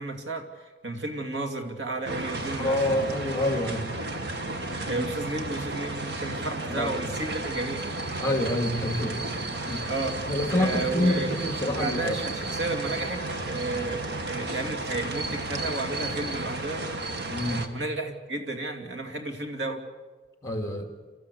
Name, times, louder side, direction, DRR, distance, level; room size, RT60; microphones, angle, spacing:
voice 1, 0.0-3.0 4.8-7.9 9.8-11.3 11.8-16.9 17.7-19.8, right 2 dB, 85° right, 4 dB, 2.6 m, -32 dB
sound 1, 2.1-17.7, right 2 dB, 65° right, 1.8 m, -33 dB
voice 2, 2.6-3.9 4.9-5.1 6.7-6.9 8.2-9.2 9.7-9.9 10.3-12.3 17.3-17.7 20.4-20.9, left 1 dB, 20° left, 5 dB, 2.4 m, -27 dB
29.5 x 14.0 x 8.4 m, 1.4 s
head